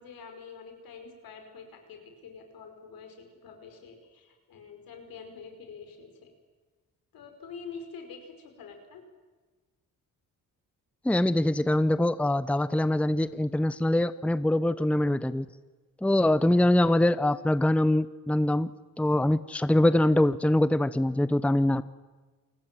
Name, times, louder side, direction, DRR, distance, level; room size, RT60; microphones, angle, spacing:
voice 1, 0.0-6.3 7.1-9.1, left 5 dB, 80° left, 5 dB, 5.2 m, -46 dB
voice 2, 11.0-15.5 16.0-18.7 19.0-21.8, left 1 dB, 5° left, 15 dB, 0.8 m, -23 dB
28.5 x 20.0 x 7.6 m, 1.3 s
cardioid pair, 75°, 34 cm